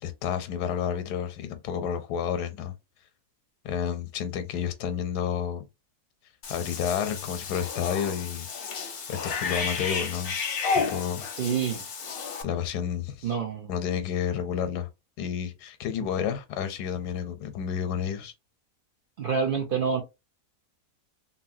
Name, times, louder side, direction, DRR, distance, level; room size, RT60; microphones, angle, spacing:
voice 1, 0.0-2.7 3.6-5.6 6.5-8.5 9.1-10.4 10.7-11.2 12.4-13.3 13.7-14.9 15.2-18.3, left 8 dB, 90° left, 1.2 m, -30 dB
Cat / Bathtub (filling or washing), 6.4-12.4, left 5 dB, 55° left, 0.6 m, -32 dB
voice 2, 11.4-11.8 13.2-13.7 19.2-20.0, right 6 dB, 85° right, 0.4 m, -27 dB
2.8 x 2.7 x 2.6 m
omnidirectional pair, 1.7 m